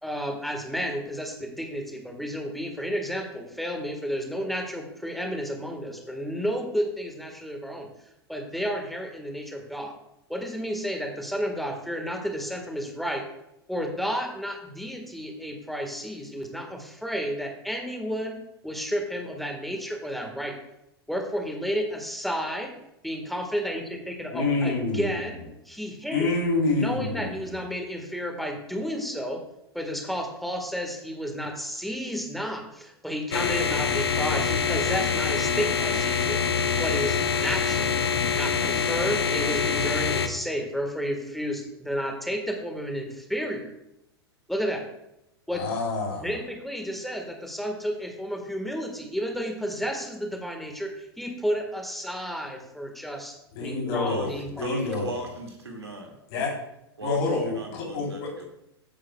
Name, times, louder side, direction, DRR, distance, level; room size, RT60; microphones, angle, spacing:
voice 1, 0.0-7.9 8.3-9.9 10.3-13.2 13.7-20.6 21.1-22.7 23.0-25.4 25.6-26.3 26.7-29.4 29.7-36.4 36.8-37.9 38.3-43.7 44.5-44.8 45.5-45.6 46.2-53.3 53.6-54.9, equal, ahead, 3 dB, 1.6 m, -31 dB
voice 2, 24.3-25.2 26.1-27.5 45.5-46.3 53.6-55.1 56.3-56.5 57.0-58.3, left 3 dB, 45° left, -2 dB, 3.5 m, -27 dB
sound 1, 33.3-40.3, left 6 dB, 70° left, 0.8 m, -25 dB
voice 3, 54.1-56.2 57.0-57.2 57.5-58.4, right 2 dB, 75° right, 2 dB, 2.1 m, -37 dB
14.5 x 7.3 x 2.3 m, 0.84 s
figure-of-eight pair, 95°, 14 cm